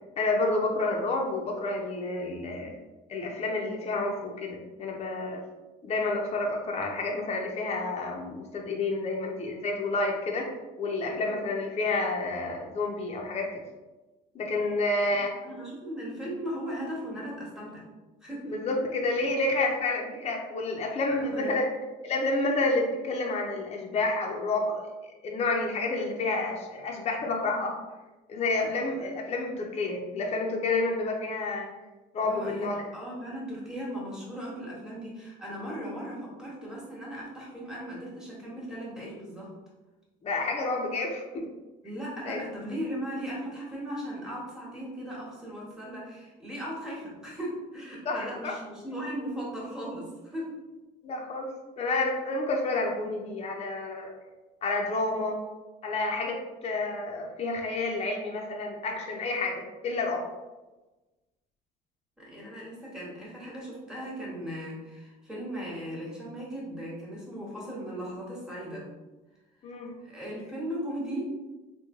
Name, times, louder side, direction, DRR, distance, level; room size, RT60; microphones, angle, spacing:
voice 1, 0.2-2.7 3.1-5.4 5.8-10.5 10.8-13.6 14.3-15.3 18.5-21.6 22.0-24.9 25.2-27.8 28.3-31.7 32.1-32.8 40.2-41.5 42.3-42.4 48.1-48.5 51.0-51.5 51.8-54.1 54.6-55.4 55.8-60.2 69.6-69.9, left 2 dB, 40° left, 0 dB, 0.6 m, -29 dB
voice 2, 15.0-17.9 18.2-18.5 21.1-21.6 28.6-28.7 32.2-39.5 41.8-50.5 62.2-68.9 70.0-71.3, equal, 5° right, -6 dB, 1.2 m, -37 dB
3.1 x 2.2 x 3.6 m, 1.1 s
cardioid pair, 110°, 17 cm